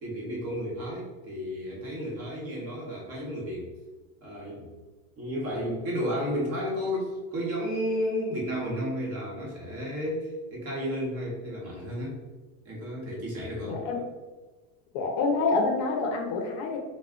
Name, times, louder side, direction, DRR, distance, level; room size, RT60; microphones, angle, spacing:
voice 1, 0.0-3.7 4.2-4.7 5.2-12.2 12.6-13.8, equal, 35° right, -4 dB, 0.9 m, -32 dB
voice 2, 13.6-14.0 14.9-16.8, left 3 dB, 55° left, 2 dB, 0.5 m, -27 dB
2.2 x 2.0 x 3.5 m, 1.3 s
cardioid pair, 155°, 42 cm